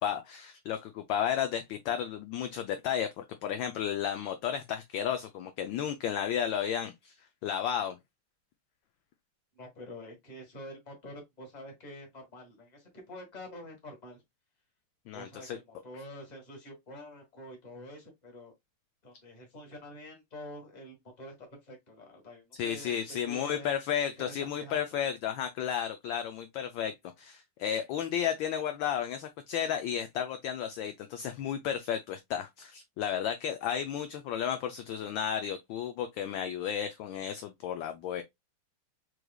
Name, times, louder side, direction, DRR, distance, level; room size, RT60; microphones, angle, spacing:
voice 1, 0.0-7.1 7.4-8.0 15.1-15.6 22.6-38.2, left 9 dB, 75° left, 1.2 m, -33 dB
voice 2, 9.5-14.2 15.1-18.5 19.0-23.7 24.3-25.0, left 1 dB, 20° left, 1.4 m, -47 dB
4.8 x 3.1 x 2.3 m
omnidirectional pair, 2.4 m